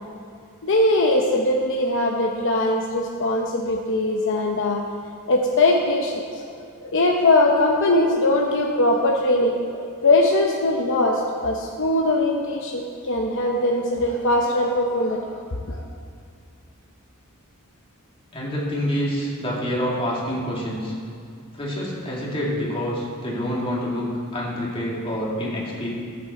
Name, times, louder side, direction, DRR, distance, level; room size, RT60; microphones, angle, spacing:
voice 1, 0.6-4.8 5.3-6.4 6.8-15.4 15.7-15.8, left 2 dB, 60° left, 0 dB, 0.8 m, -21 dB
voice 2, 18.3-20.9 21.5-25.9, equal, 25° left, -5 dB, 2.3 m, -27 dB
14.0 x 7.8 x 4.3 m, 2.3 s
head